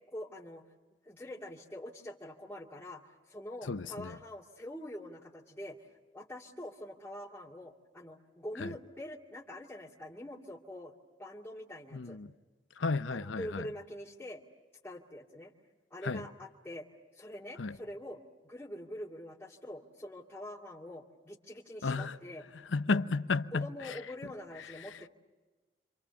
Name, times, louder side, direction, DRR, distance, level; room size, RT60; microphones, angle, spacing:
voice 1, 0.1-0.6 1.0-3.0 3.3-5.9 6.1-10.9 11.2-12.2 13.1-14.4 14.8-15.5 15.9-16.9 17.1-18.2 18.4-22.4 23.5-25.1, left 1 dB, 10° left, 2.2 m, -45 dB
voice 2, 3.7-4.2 8.6-8.7 11.9-12.3 12.8-13.7 16.0-16.2 17.6-17.8 21.8-22.2 22.7-24.3 24.6-25.0, left 4 dB, 85° left, 0.8 m, -33 dB
30.0 x 26.5 x 7.0 m
head